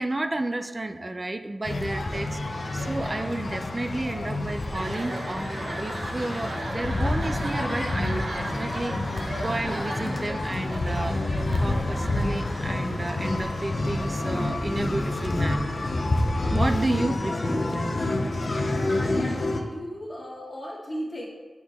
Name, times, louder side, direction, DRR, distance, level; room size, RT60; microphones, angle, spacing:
voice 1, 0.0-2.4 2.7-9.0 9.4-11.2 11.6-15.8 16.5-18.0, right 2 dB, 30° right, 8 dB, 0.5 m, -31 dB
sound 1, 1.7-19.6, left 2 dB, 50° left, 0.7 m, -28 dB
sound 2, 2.5-14.2, right 1 dB, 55° right, 1.0 m, -37 dB
voice 2, 18.9-21.2, equal, 25° left, -9 dB, 1.9 m, -36 dB
8.5 x 6.1 x 3.6 m, 1.3 s
wide cardioid pair, 90°, 0 cm